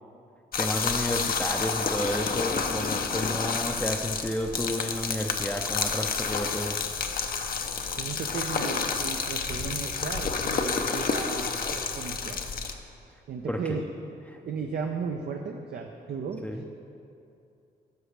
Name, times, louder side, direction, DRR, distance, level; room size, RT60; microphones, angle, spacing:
sound 1, 0.5-12.7, left 5 dB, 55° left, 0.7 m, -29 dB
voice 1, 0.6-6.8 13.4-13.8 14.3-14.4 16.4-16.6, equal, 5° left, 1 dB, 0.6 m, -31 dB
voice 2, 8.0-12.4 13.3-13.9 14.4-16.6, right 5 dB, 60° right, 2 dB, 0.6 m, -35 dB
12.5 x 6.2 x 3.4 m, 2.6 s
supercardioid pair, 60°, 18 cm